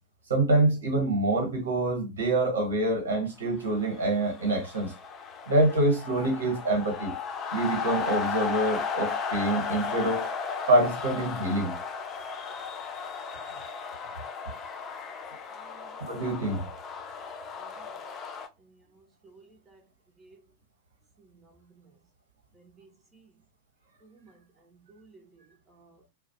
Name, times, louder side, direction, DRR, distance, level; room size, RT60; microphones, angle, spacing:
voice 1, 0.3-4.9 5.5-7.1 7.5-10.3 10.7-11.8 16.0-16.7, right 2 dB, 70° right, 1.1 m, -26 dB
sound 1, 3.7-18.5, left 6 dB, 30° left, 0.4 m, -35 dB
voice 2, 19.0-19.8 20.2-20.4 21.2-21.5 21.8-21.9 22.6-22.9 24.0-24.4 24.9-25.2 25.7-25.9, right 3 dB, 15° right, 0.6 m, -56 dB
2.3 x 2.1 x 2.7 m
figure-of-eight pair, 90°, 0 cm